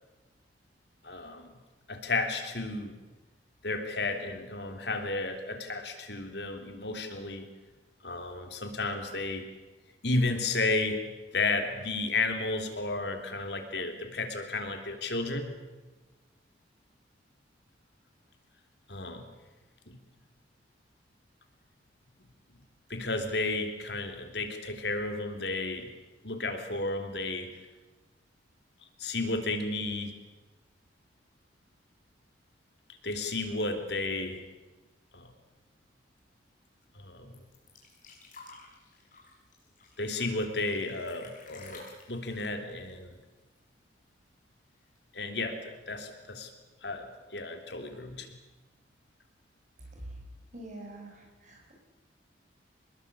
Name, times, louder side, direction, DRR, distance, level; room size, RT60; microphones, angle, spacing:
voice 1, 1.0-1.5 1.9-2.9 3.6-7.5 8.0-9.5 10.0-11.0 11.3-15.6 18.9-19.3 19.9-20.0 22.9-25.9 26.2-27.5 29.0-30.1 33.0-34.4 35.1-35.3 37.0-37.3 40.0-43.1 45.1-45.6 45.9-46.5 46.8-48.3, left 3 dB, 65° left, 6 dB, 3.5 m, -32 dB
sound 1, 37.3-43.8 44.0-44.1 44.4-45.2 46.0-46.1, left 3 dB, 45° left, 6.7 m, -52 dB
voice 2, 50.5-51.7, right 1 dB, 45° right, 1 dB, 7.7 m, -45 dB
25.5 x 21.0 x 8.5 m, 1.2 s
head